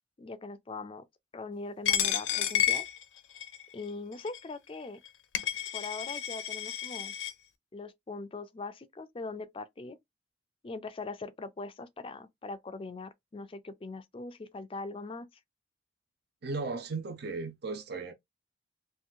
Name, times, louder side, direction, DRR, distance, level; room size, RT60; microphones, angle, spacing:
voice 1, 0.2-1.1 1.3-2.8 3.7-5.0 5.7-7.1 7.7-10.0 10.6-15.3, left 3 dB, 30° left, 0.4 m, -41 dB
Coin (dropping), 1.9-3.6 4.3-4.4 5.1-5.2 5.3-7.3, left 10 dB, 85° left, 0.5 m, -31 dB
voice 2, 16.4-18.1, right 3 dB, 60° right, 0.6 m, -36 dB
3.7 x 2.6 x 2.2 m
head